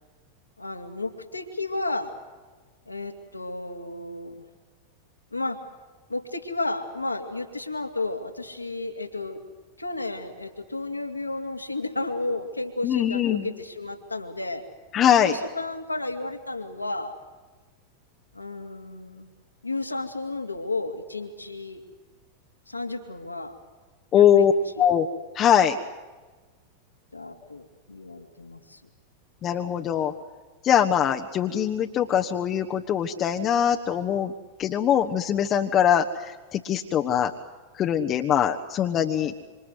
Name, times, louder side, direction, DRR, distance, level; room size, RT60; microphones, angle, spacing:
voice 1, 0.6-2.1 2.9-4.4 5.3-5.6 6.1-9.4 9.8-14.6 15.2-17.1 18.3-19.3 19.6-21.8 22.7-23.5 24.1-24.4 24.8-24.9 27.1-28.8, left 2 dB, 85° left, 5 dB, 2.7 m, -32 dB
voice 2, 12.8-13.5 14.9-15.4 24.1-24.5 24.8-25.1 25.3-25.8 29.4-30.1 30.6-34.3 34.6-37.3 37.8-39.3, left 9 dB, 30° left, 4 dB, 1.3 m, -22 dB
27.0 x 26.5 x 8.2 m, 1.3 s
figure-of-eight pair, 90°, 0 cm